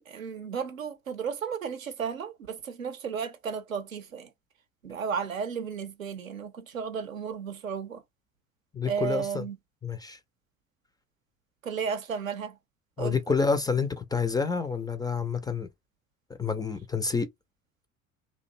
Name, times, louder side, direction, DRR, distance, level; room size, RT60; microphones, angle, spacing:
voice 1, 0.1-4.3 4.8-8.0 8.8-9.6 11.6-12.6 13.0-13.2, right 6 dB, 90° right, 0.5 m, -34 dB
voice 2, 8.7-9.4 9.8-10.2 13.0-15.7 16.4-17.3, left 5 dB, 10° left, 0.3 m, -28 dB
2.5 x 2.1 x 2.5 m
figure-of-eight pair, 60°, 39 cm